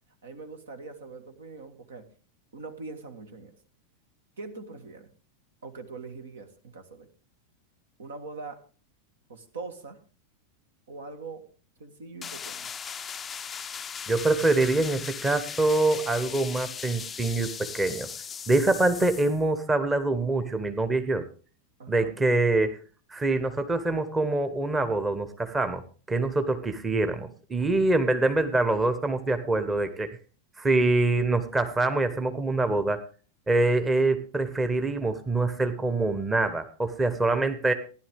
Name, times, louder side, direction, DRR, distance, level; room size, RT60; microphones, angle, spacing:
voice 1, 0.2-2.1 2.5-3.5 4.4-5.1 5.6-7.1 8.0-8.6 9.3-10.0 10.9-11.5 11.8-12.7 21.8-22.2, right 3 dB, 65° right, 7 dB, 1.5 m, -42 dB
sound 1, 12.2-19.4, left 7 dB, 20° left, 0.5 m, -38 dB
voice 2, 14.1-18.1 18.5-21.2 21.9-22.8 23.1-25.8 26.1-30.1 30.6-33.0 33.5-37.7, right 2 dB, 15° right, 9 dB, 1.1 m, -25 dB
16.0 x 11.0 x 3.5 m, 0.39 s
figure-of-eight pair, 90°, 0 cm